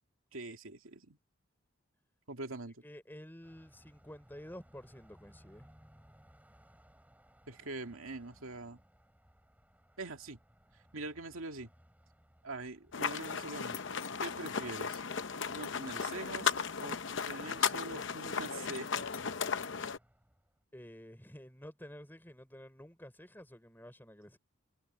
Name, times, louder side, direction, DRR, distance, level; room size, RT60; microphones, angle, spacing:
voice 1, 0.3-1.2 2.3-2.8 7.5-8.8 10.0-10.4 10.9-11.7 12.4-13.8 14.2-15.0 15.5-16.5 16.8-17.0 17.3-19.1, right 2 dB, 85° right, 2.3 m, -43 dB
voice 2, 2.8-5.7 20.7-24.4, equal, 10° left, 3.8 m, -51 dB
Car passing by, 3.4-20.6, equal, 5° right, 7.0 m, -64 dB
sound 1, 12.9-20.0, left 6 dB, 60° left, 0.8 m, -36 dB
head